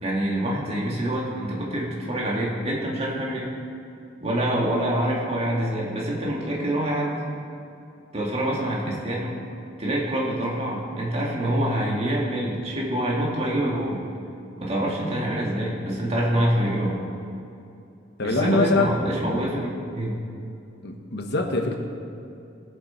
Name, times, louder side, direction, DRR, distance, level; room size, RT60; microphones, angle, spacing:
voice 1, 0.0-3.5 4.2-7.1 8.1-9.4 9.8-14.0 14.6-17.1 18.2-19.7 20.0-20.1, right 1 dB, 35° right, -4 dB, 2.0 m, -26 dB
voice 2, 18.2-18.9 20.8-21.8, left 2 dB, 60° left, 3 dB, 1.3 m, -23 dB
20.5 x 7.4 x 4.5 m, 2.6 s
head